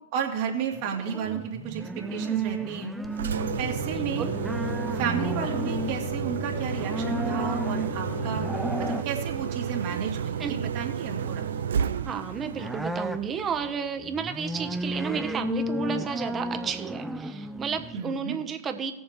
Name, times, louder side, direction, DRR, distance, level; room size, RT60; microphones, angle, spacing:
voice 1, 0.1-2.9 3.6-4.3 4.9-8.5 8.8-11.5 17.9-18.4, right 7 dB, 55° right, 1 dB, 2.4 m, -32 dB
sound 1, 0.7-18.0, right 1 dB, 5° right, 0.6 m, -34 dB
Engine, 3.0-14.0, right 8 dB, 75° right, 0.5 m, -32 dB
sound 2, 3.4-9.0, left 7 dB, 45° left, 0.6 m, -37 dB
voice 2, 12.0-18.9, right 6 dB, 25° right, 8 dB, 1.1 m, -32 dB
18.5 x 7.0 x 3.3 m, 0.89 s
hypercardioid pair, 100°, 0 cm